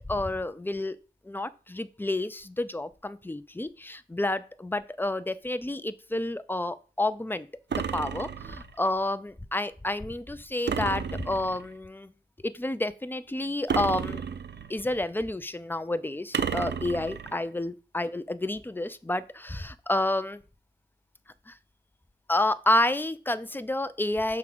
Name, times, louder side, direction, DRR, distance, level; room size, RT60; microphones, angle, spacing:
voice 1, 0.1-1.0 1.2-12.1 12.4-14.2 14.7-20.4 21.5-21.6 22.3-24.4, left 1 dB, 10° left, 13 dB, 0.4 m, -30 dB
sound 1, 7.7-8.8 10.7-11.7 13.7-14.8 16.3-17.4, right 6 dB, 80° right, 0.4 m, -32 dB
5.8 x 3.7 x 6.0 m, 0.36 s
wide cardioid pair, 75°, 18 cm